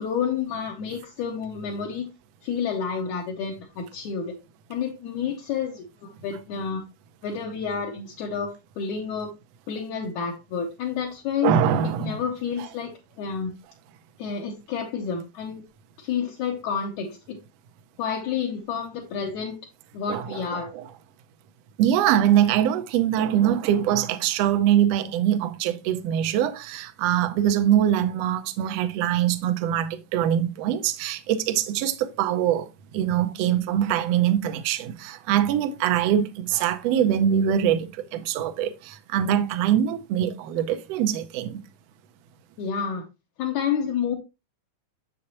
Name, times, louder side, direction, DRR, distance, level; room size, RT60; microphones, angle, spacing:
voice 1, 0.0-2.1 2.4-4.4 4.7-6.8 7.2-9.3 9.7-11.5 11.8-13.5 14.2-15.6 16.0-17.4 18.0-19.6 19.9-20.7 42.6-43.0 43.4-44.2, left 7 dB, 70° left, 2.3 m, -29 dB
voice 2, 11.4-12.2 12.6-12.7 20.1-20.5 20.7-20.9 21.8-41.6, right 10 dB, 75° right, 1.5 m, -23 dB
7.1 x 6.4 x 2.9 m
omnidirectional pair, 3.7 m